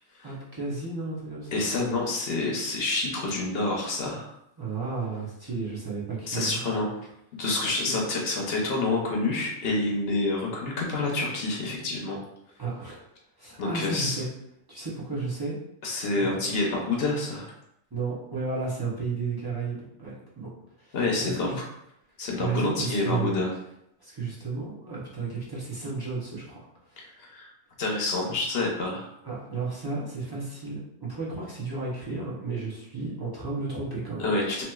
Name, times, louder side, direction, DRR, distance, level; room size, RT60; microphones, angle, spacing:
voice 1, 0.2-1.7 4.6-6.6 7.9-8.0 12.6-13.0 13.4-14.3 14.7-15.5 16.1-16.5 17.9-20.5 20.8-21.6 22.4-23.3 24.0-27.0 29.2-34.4, right 4 dB, 25° right, -6 dB, 0.6 m, -33 dB
voice 2, 1.5-4.3 6.3-6.9 7.3-12.2 13.6-14.2 15.8-17.5 20.9-21.6 22.2-23.5 27.0-27.5 27.8-29.1 34.2-34.6, left 3 dB, 60° left, -1 dB, 0.8 m, -28 dB
2.9 x 2.9 x 2.2 m, 0.78 s
omnidirectional pair, 1.2 m